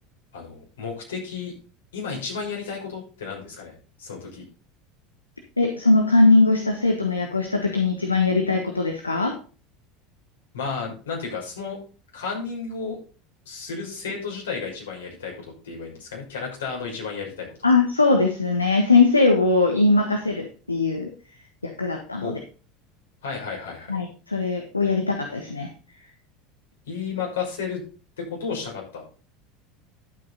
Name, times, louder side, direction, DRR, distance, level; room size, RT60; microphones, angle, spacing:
voice 1, 0.3-1.5 1.9-4.4 10.5-11.8 12.1-13.0 13.5-17.7 22.2-22.3 23.2-24.0 26.9-27.8 28.2-29.0, left 5 dB, 75° left, -1 dB, 6.1 m, -32 dB
voice 2, 5.6-9.4 17.6-21.1 21.6-22.3 23.9-25.7, left 3 dB, 90° left, 3 dB, 1.4 m, -20 dB
11.5 x 8.4 x 4.1 m, 0.37 s
figure-of-eight pair, 75°, 0 cm